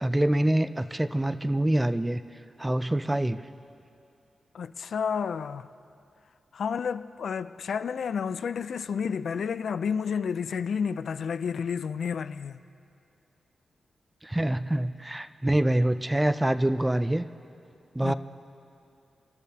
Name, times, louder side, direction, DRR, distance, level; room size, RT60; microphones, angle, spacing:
voice 1, 0.0-2.2 2.6-3.4 14.2-17.2 18.0-18.1, right 1 dB, 10° right, 0.3 m, -25 dB
voice 2, 4.5-5.7 6.5-12.6 18.0-18.1, left 6 dB, 70° left, 0.3 m, -30 dB
28.5 x 13.0 x 2.8 m
wide cardioid pair, 150°, 0 cm